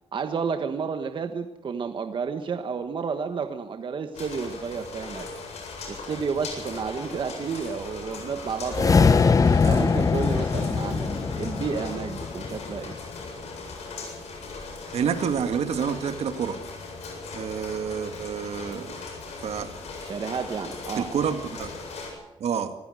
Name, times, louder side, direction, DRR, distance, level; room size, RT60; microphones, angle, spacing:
voice 1, 0.1-5.3 5.9-9.2 9.6-12.9 20.0-21.1, right 5 dB, 50° right, 7 dB, 1.4 m, -31 dB
sound 1, 4.1-22.1, left 3 dB, 90° left, 7.9 m, -39 dB
sound 2, 8.6-13.0, left 5 dB, 30° left, 0.7 m, -22 dB
voice 2, 14.9-16.6 17.3-19.0 19.4-19.8 21.0-21.7 22.4-22.7, right 7 dB, 75° right, 8 dB, 2.1 m, -28 dB
25.5 x 16.0 x 6.5 m, 0.96 s
wide cardioid pair, 145°, 11 cm